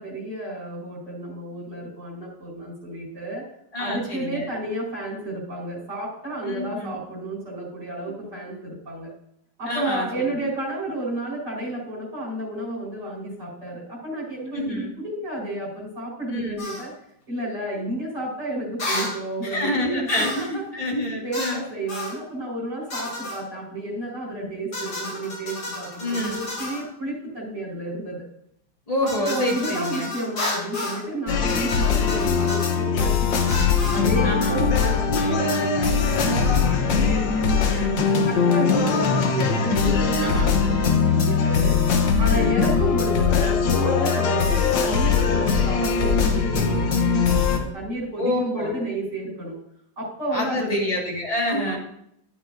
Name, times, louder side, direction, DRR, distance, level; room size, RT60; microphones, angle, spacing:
voice 1, 0.0-3.4 3.8-9.1 9.6-16.9 17.3-20.1 20.4-20.9 21.2-28.3 29.0-33.6 33.9-41.8 42.2-49.5 50.0-50.8 51.5-51.8, right 1 dB, 55° right, -4 dB, 4.9 m, -31 dB
voice 2, 3.7-4.5 6.4-7.0 9.7-10.2 14.5-14.9 16.3-16.7 19.4-21.6 24.4-24.5 26.0-26.4 28.9-30.1 34.2-34.6 37.7-38.0 40.2-40.6 42.2-42.5 48.2-48.8 50.3-51.8, left 1 dB, 20° left, -1 dB, 1.8 m, -27 dB
sound 1, 16.6-16.8 18.8-19.2 20.1-20.5 21.3-21.6 21.9-22.2 22.9-23.4 24.7-26.8 29.1-31.0 31.5-32.7 33.5-34.0, left 2 dB, 55° left, 3.4 m, -31 dB
sound 2, 31.3-47.6, left 5 dB, 70° left, 1.7 m, -21 dB
12.5 x 8.0 x 2.6 m, 0.73 s
omnidirectional pair, 2.2 m